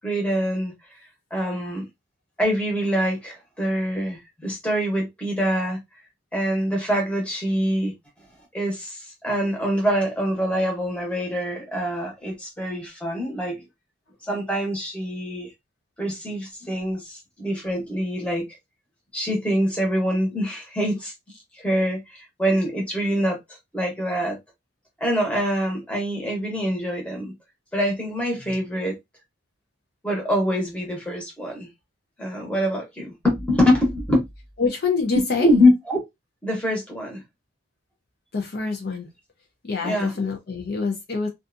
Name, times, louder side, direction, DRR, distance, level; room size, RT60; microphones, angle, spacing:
voice 1, 0.0-0.7 1.3-1.9 2.4-5.8 6.3-7.9 8.5-13.6 14.2-15.5 16.0-18.5 19.1-21.1 21.6-23.4 23.7-24.4 25.0-27.3 27.7-29.0 30.0-31.7 32.2-34.2 35.4-36.0 36.4-37.2 39.8-40.1, equal, 5° left, 0.9 m, -24 dB
voice 2, 34.6-35.5 38.3-39.1 39.6-41.3, left 4 dB, 50° left, 0.5 m, -26 dB
2.6 x 2.3 x 2.5 m
head